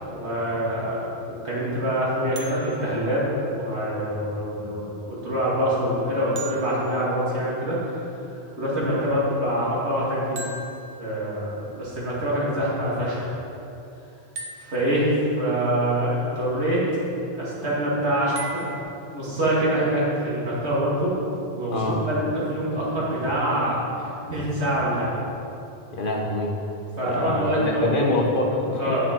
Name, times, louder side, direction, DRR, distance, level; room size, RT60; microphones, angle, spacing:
voice 1, 0.1-3.2 3.5-8.0 8.6-10.4 11.0-13.3 14.6-16.8 17.4-18.6 19.1-21.2 21.5-25.1 26.9-28.0 28.8-29.1, right 1 dB, 75° right, -7 dB, 2.5 m, -25 dB
sound 1, 2.4-4.3 6.4-8.2 10.4-11.8 14.4-15.7 18.4-18.8, right 3 dB, 55° right, 1.1 m, -41 dB
voice 2, 21.7-22.0 25.9-26.5 27.0-27.4 27.8-28.9, left 2 dB, 50° left, -1 dB, 1.1 m, -25 dB
8.9 x 6.3 x 4.4 m, 2.8 s
omnidirectional pair, 1.1 m